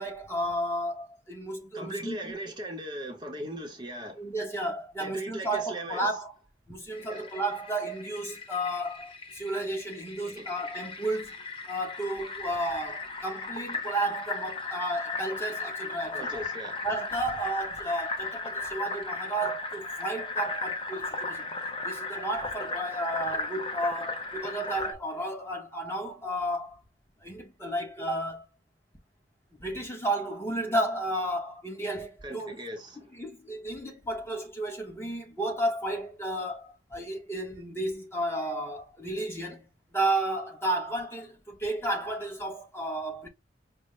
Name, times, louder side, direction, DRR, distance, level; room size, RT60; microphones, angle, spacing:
voice 1, 0.0-2.3 4.2-6.3 6.7-11.3 11.7-16.4 16.8-21.5 21.8-26.8 27.2-28.4 29.5-32.5 33.1-39.7 39.9-43.3, right 1 dB, 15° left, 1.0 m, -32 dB
voice 2, 1.7-4.2 5.0-6.1 7.1-7.3 10.4-10.5 16.1-16.8 32.2-33.1, right 1 dB, 25° right, 0.8 m, -38 dB
Fill (with liquid), 6.9-24.9, left 3 dB, 30° left, 0.6 m, -36 dB
5.2 x 2.1 x 3.1 m
head